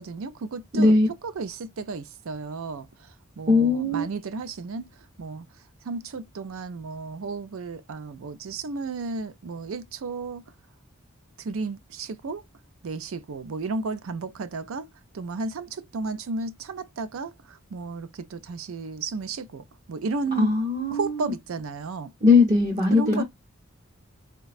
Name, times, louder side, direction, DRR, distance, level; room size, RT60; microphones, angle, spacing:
voice 1, 0.0-4.9 5.2-5.5 5.8-10.4 11.4-12.4 12.8-20.5 20.9-22.1 22.9-23.2, right 3 dB, 75° right, 0.5 m, -33 dB
voice 2, 0.8-1.1 3.5-4.0 20.4-21.3 22.2-23.2, left 3 dB, 30° right, 0.7 m, -20 dB
4.0 x 2.2 x 2.3 m
head